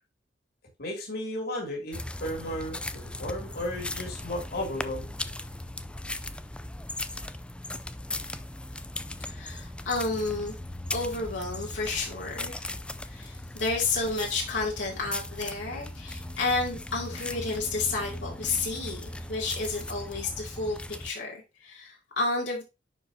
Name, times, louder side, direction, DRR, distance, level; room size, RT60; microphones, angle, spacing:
voice 1, 0.8-5.1, left 1 dB, 55° left, 0 dB, 2.7 m, -34 dB
sound 1, 1.9-21.1, left 1 dB, 5° left, 0.4 m, -38 dB
voice 2, 9.3-10.6 10.9-12.7 13.0-22.6, left 3 dB, 75° left, -3 dB, 2.5 m, -31 dB
10.5 x 4.9 x 2.8 m, 0.26 s
head